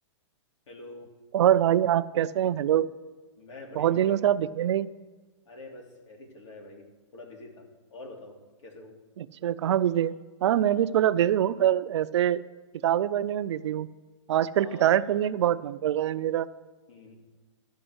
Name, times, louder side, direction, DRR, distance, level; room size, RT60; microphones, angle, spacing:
voice 1, 0.7-1.1 3.4-4.2 5.5-6.8 7.1-7.6 7.9-8.9 14.6-15.3 16.9-17.2, left 2 dB, 75° left, 1 dB, 3.0 m, -46 dB
voice 2, 1.3-2.9 3.8-4.9 9.2-10.1 10.4-12.4 12.8-13.9 14.3-16.5, right 11 dB, 65° right, 14 dB, 0.5 m, -24 dB
12.5 x 5.4 x 7.9 m, 1.3 s
hypercardioid pair, 160°, 16 cm